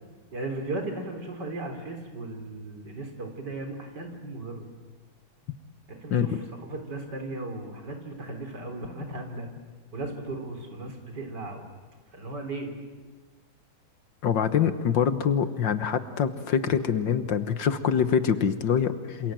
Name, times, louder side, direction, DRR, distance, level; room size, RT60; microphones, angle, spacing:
voice 1, 0.3-4.7 5.9-6.4 6.7-9.5 9.9-11.7 12.1-12.7, right 2 dB, 55° right, 4 dB, 4.4 m, -36 dB
voice 2, 14.2-19.3, left 7 dB, 65° left, 11 dB, 1.8 m, -25 dB
27.5 x 27.5 x 7.7 m, 1.4 s
omnidirectional pair, 2.2 m